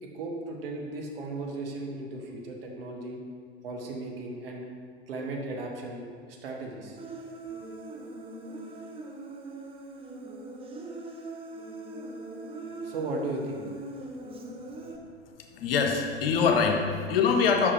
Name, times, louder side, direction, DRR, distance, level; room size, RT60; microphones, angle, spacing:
voice 1, 0.0-3.2 3.6-4.6 5.1-6.0 6.3-7.0 12.8-13.6, right 2 dB, 65° right, 0 dB, 1.2 m, -36 dB
Human voice, 7.0-15.0, right 2 dB, 15° right, 0.7 m, -41 dB
voice 2, 15.6-17.7, left 5 dB, 65° left, 4 dB, 0.9 m, -24 dB
5.7 x 4.9 x 4.8 m, 2.2 s
figure-of-eight pair, 80°, 32 cm